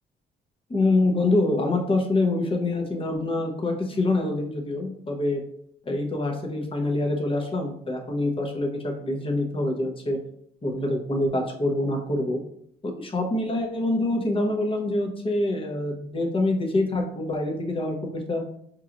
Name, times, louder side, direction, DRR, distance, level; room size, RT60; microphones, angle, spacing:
voice 1, 0.7-5.4 5.9-10.2 10.6-12.4 12.8-18.4, left 2 dB, 25° left, 2 dB, 0.9 m, -25 dB
4.7 x 3.0 x 2.5 m, 0.69 s
cardioid pair, 90°, 20 cm